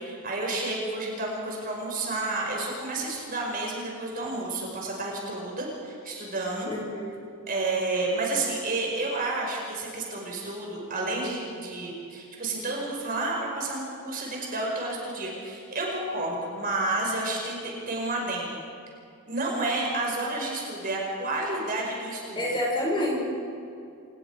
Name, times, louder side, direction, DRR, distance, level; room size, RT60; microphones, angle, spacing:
voice 1, 0.0-6.7 7.5-18.6 19.3-22.4, right 2 dB, 40° right, -1 dB, 5.3 m, -30 dB
voice 2, 6.7-7.1 22.4-23.2, left 1 dB, 20° left, -3 dB, 5.6 m, -28 dB
27.5 x 19.5 x 4.8 m, 2.5 s
head